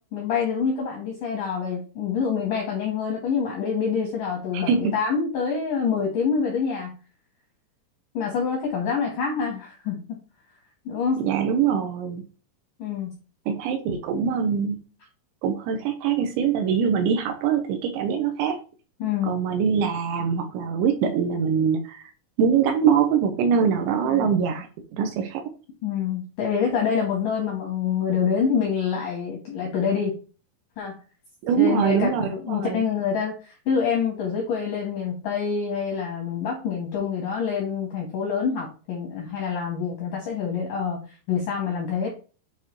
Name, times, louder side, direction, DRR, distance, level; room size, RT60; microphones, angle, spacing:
voice 1, 0.1-6.9 8.1-10.0 10.9-11.2 12.8-13.1 19.0-19.4 24.0-24.3 25.8-30.2 30.8-31.0 31.6-41.0 41.3-42.1, left 6 dB, 75° left, -1 dB, 1.9 m, -26 dB
voice 2, 4.5-4.9 11.2-12.2 13.5-14.8 15.4-18.6 19.2-22.1 22.4-24.7 24.9-25.4 31.4-32.8, right 7 dB, 80° right, 5 dB, 2.8 m, -23 dB
9.1 x 3.6 x 3.0 m, 0.36 s
omnidirectional pair, 5.5 m